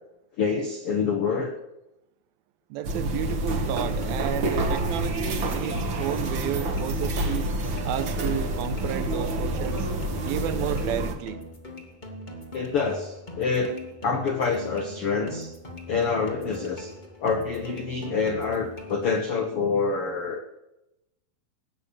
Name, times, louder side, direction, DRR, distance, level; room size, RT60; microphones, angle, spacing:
voice 1, 0.4-1.5 12.5-13.8 14.0-15.5 15.9-16.9 17.2-20.6, left 5 dB, 75° left, 4 dB, 1.3 m, -26 dB
voice 2, 2.7-7.5 7.8-9.9 10.2-11.4, right 12 dB, 80° right, 12 dB, 2.5 m, -32 dB
sound 1, 2.8-11.2, right 1 dB, 50° right, 1.5 m, -28 dB
sound 2, 3.3-19.3, left 1 dB, 35° left, 0.7 m, -42 dB
18.5 x 8.8 x 6.8 m, 0.91 s
omnidirectional pair, 4.4 m